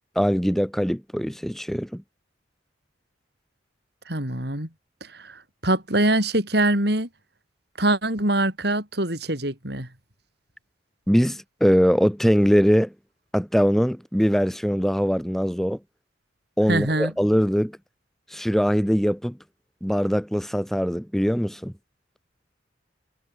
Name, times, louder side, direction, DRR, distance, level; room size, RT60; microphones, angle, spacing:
voice 1, 0.2-2.0 11.1-12.9 13.3-15.8 16.6-17.8 18.3-19.4 19.8-21.7, equal, ahead, 2.4 m, -22 dB
voice 2, 4.1-4.7 5.0-7.1 7.8-9.9 16.7-17.1, right 1 dB, 60° right, 7.6 m, -24 dB
head